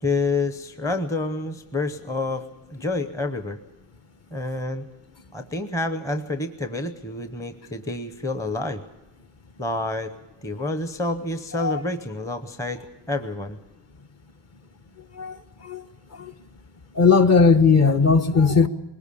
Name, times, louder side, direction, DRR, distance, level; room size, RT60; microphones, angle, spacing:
voice 1, 0.0-3.6 4.3-4.8 5.3-8.8 9.6-10.1 10.4-13.6, left 2 dB, 5° left, 0.8 m, -28 dB
voice 2, 15.1-15.8 16.1-16.3 16.9-18.7, left 5 dB, 30° left, 1.0 m, -18 dB
21.0 x 19.5 x 6.9 m
cardioid pair, 145°, 49 cm